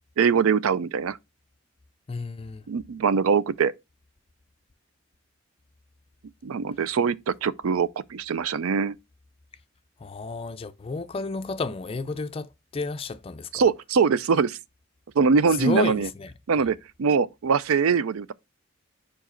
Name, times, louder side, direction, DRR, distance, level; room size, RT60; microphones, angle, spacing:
voice 1, 0.2-1.2 2.7-3.7 6.4-8.9 13.5-14.6 15.2-16.1 16.5-18.3, right 5 dB, 85° right, 0.4 m, -23 dB
voice 2, 2.1-2.6 10.0-13.7 15.5-16.7, left 4 dB, 25° left, 0.3 m, -32 dB
5.0 x 4.7 x 4.3 m
head